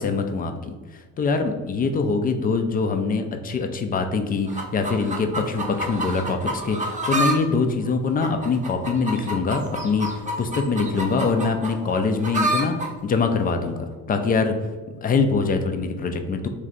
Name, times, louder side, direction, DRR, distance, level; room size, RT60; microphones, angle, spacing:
voice 1, 0.0-14.5 15.0-16.5, left 4 dB, 20° left, 6 dB, 0.3 m, -24 dB
sound 1, 4.5-7.4 7.7-12.9 13.7-13.8, right 1 dB, 15° right, 0.7 m, -28 dB
3.2 x 3.2 x 3.7 m, 1.4 s
figure-of-eight pair, 55°, 46 cm